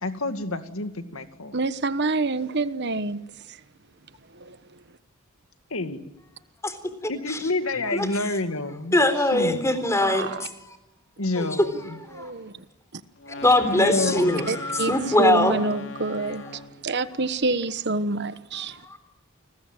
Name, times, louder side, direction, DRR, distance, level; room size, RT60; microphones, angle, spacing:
voice 1, 0.0-1.5 5.7-6.0 7.1-9.0 9.3-9.7 11.2-12.0 13.7-14.5, left 2 dB, 80° left, 2.3 m, -28 dB
voice 2, 1.5-3.2 3.5-3.6 4.3-4.8 10.0-10.5 12.1-12.6 12.9-13.0 14.5-18.8, right 3 dB, 55° right, 1.2 m, -27 dB
voice 3, 8.9-10.5 11.4-11.5 12.1-12.3 13.4-15.6 18.7-19.0, left 1 dB, 15° left, 3.8 m, -22 dB
sound 1, 13.2-16.8, left 3 dB, 60° left, 3.2 m, -39 dB
30.0 x 21.0 x 9.0 m
head